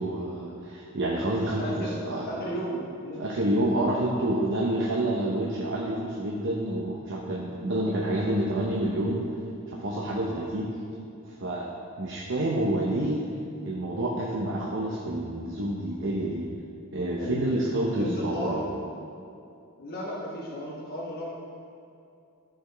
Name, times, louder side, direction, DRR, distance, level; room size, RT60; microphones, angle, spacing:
voice 1, 0.0-2.3 3.2-9.2 9.7-10.7 11.2-11.7 12.0-13.2 13.6-16.5 16.9-18.6, right 1 dB, 60° right, -3 dB, 0.8 m, -28 dB
voice 2, 1.6-3.3 17.2-17.6 18.0-18.7 19.8-21.3, equal, 45° left, -5 dB, 1.1 m, -35 dB
13.0 x 5.2 x 3.4 m, 2.6 s
head